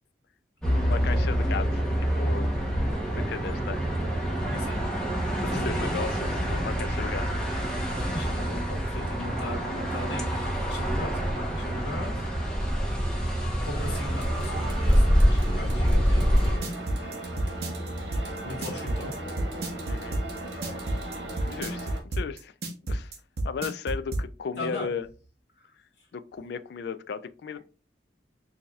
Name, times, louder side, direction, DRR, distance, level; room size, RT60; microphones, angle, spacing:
sound 1, 0.6-16.6, equal, 5° left, 0.8 m, -26 dB
voice 1, 0.8-2.5 3.1-3.8 5.6-7.3 16.8-17.2 19.9-20.2 21.4-22.5 22.9-23.1 23.4-25.1 26.1-27.6, left 6 dB, 65° left, 0.3 m, -35 dB
voice 2, 4.5-4.8 5.3-6.0 8.1-12.3 13.2-13.3 13.6-16.7 18.4-19.1 24.6-24.9 25.5-25.7 26.0-26.1, left 2 dB, 80° left, 1.5 m, -38 dB
sound 2, 13.8-22.0, right 1 dB, 80° right, 1.3 m, -37 dB
sound 3, 16.4-24.3, right 1 dB, 60° right, 0.8 m, -30 dB
4.6 x 2.7 x 2.3 m
head